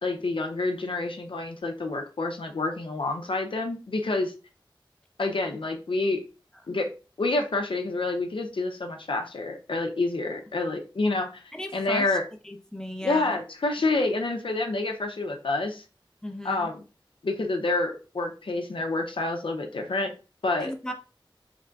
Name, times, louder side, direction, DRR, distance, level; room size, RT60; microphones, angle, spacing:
voice 1, 0.0-4.3 5.2-6.2 6.7-6.9 7.2-11.4 11.7-12.2 13.0-15.8 16.4-16.8 17.2-20.1 20.4-20.7, left 2 dB, 75° left, 0.5 m, -28 dB
voice 2, 11.5-12.2 12.4-13.4 16.2-16.7 20.6-20.9, left 1 dB, 10° left, 0.5 m, -36 dB
3.8 x 3.3 x 2.3 m
wide cardioid pair, 55°, 9 cm